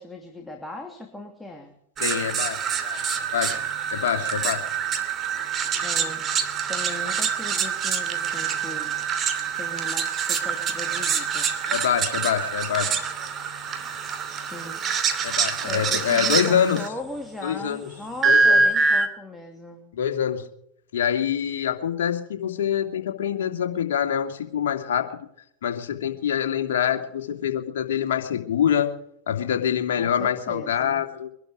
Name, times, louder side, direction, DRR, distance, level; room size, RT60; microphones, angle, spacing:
voice 1, 0.0-1.7 5.8-6.3 6.7-9.0 9.6-11.5 14.3-14.8 15.6-19.8 30.0-31.0, left 2 dB, 10° left, 2 dB, 2.7 m, -38 dB
voice 2, 2.0-3.6 3.9-4.6 11.7-13.0 15.2-16.8 17.4-17.9 18.2-18.6 19.9-20.4 20.9-25.1 25.6-28.9 29.3-31.3, left 9 dB, 70° left, 4 dB, 2.6 m, -25 dB
sound 1, 2.0-16.9 18.2-19.1, right 5 dB, 30° right, 2.7 m, -25 dB
23.5 x 12.0 x 5.1 m, 0.75 s
hypercardioid pair, 100°, 0 cm